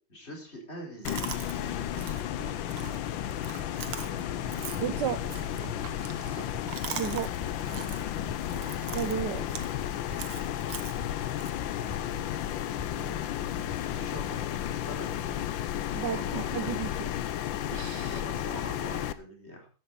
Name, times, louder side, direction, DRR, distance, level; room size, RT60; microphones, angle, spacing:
voice 1, 0.1-2.8 6.3-6.5 8.5-8.6 12.9-13.4 13.9-15.4 16.0-17.0 18.1-19.7, equal, 30° left, 4.5 m, -45 dB
Chewing mastication, 1.0-11.5, right 9 dB, 90° right, 2.0 m, -43 dB
sound 1, 1.1-19.1, left 11 dB, 70° left, 1.5 m, -33 dB
voice 2, 4.8-5.2 6.9-7.3 8.9-9.5 15.9-17.1 17.7-18.2, right 9 dB, 65° right, 1.2 m, -33 dB
sound 2, 6.5-14.5, left 2 dB, 10° right, 6.1 m, -49 dB
14.0 x 11.5 x 4.1 m
omnidirectional pair, 2.2 m